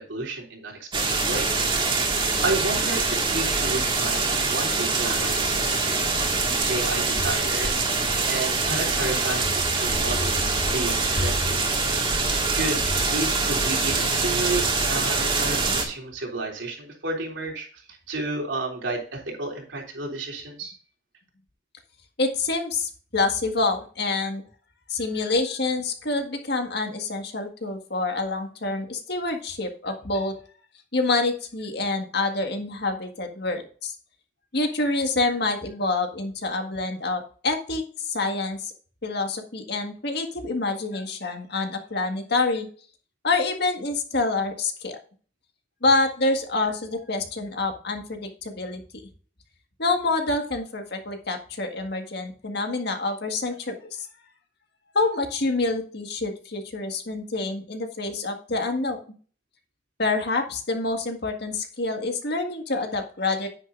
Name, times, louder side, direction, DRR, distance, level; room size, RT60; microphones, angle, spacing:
voice 1, 0.0-1.7 2.4-6.1 6.7-7.9 8.3-10.4 10.7-11.9 12.2-12.8 13.1-20.7, right 2 dB, 75° right, -1 dB, 3.4 m, -32 dB
sound 1, 0.9-15.9, right 3 dB, 25° right, 2.0 m, -24 dB
voice 2, 22.2-24.4 24.9-30.3 30.9-34.0 34.5-38.7 39.0-42.7 43.2-45.0 45.8-48.8 49.8-54.1 54.9-59.0 60.0-63.5, left 3 dB, 60° left, 5 dB, 1.8 m, -27 dB
9.8 x 9.2 x 2.6 m, 0.41 s
head